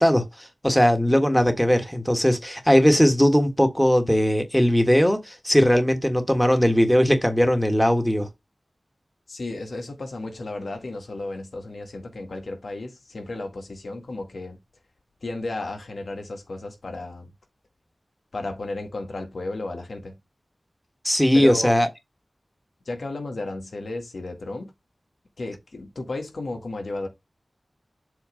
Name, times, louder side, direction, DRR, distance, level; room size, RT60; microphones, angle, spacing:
voice 1, 0.0-8.3 21.0-21.9, equal, 5° left, 1.6 m, -19 dB
voice 2, 9.3-14.6 15.2-17.3 18.3-20.2 21.3-21.7 22.9-24.7 25.4-27.1, left 2 dB, 85° left, 1.9 m, -33 dB
7.9 x 3.2 x 5.0 m
wide cardioid pair, 75°, 0 cm